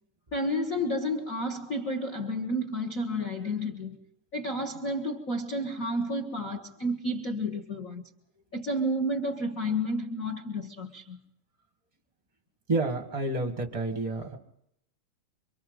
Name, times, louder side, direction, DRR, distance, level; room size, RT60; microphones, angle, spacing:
voice 1, 0.3-4.0 4.3-8.0 8.5-11.2, equal, 80° left, 0.7 m, -31 dB
voice 2, 12.7-14.4, right 2 dB, 40° right, 0.4 m, -29 dB
27.5 x 24.5 x 3.9 m
omnidirectional pair, 3.7 m